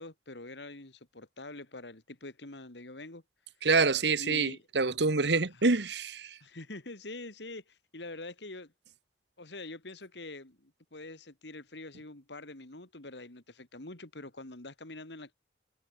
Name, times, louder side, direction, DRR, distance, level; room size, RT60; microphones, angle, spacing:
voice 1, 0.0-3.2 4.2-4.6 5.5-5.7 6.4-8.7 9.4-15.3, left 2 dB, 80° left, 2.7 m, -45 dB
voice 2, 3.6-6.4, right 4 dB, 75° right, 1.4 m, -26 dB
head